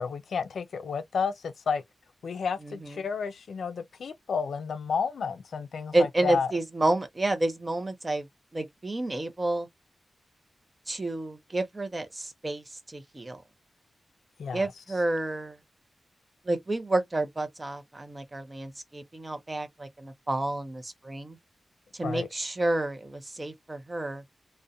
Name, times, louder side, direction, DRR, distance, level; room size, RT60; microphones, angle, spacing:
voice 1, 0.0-1.8 2.2-6.5 14.4-14.7 22.0-22.3, left 5 dB, 75° left, 0.3 m, -31 dB
voice 2, 2.6-3.0 5.9-8.3 8.5-9.7 10.9-13.4 14.5-15.6 16.5-21.4 21.9-24.2, right 2 dB, 20° right, 0.4 m, -30 dB
2.4 x 2.1 x 2.5 m
wide cardioid pair, 175°, 0 cm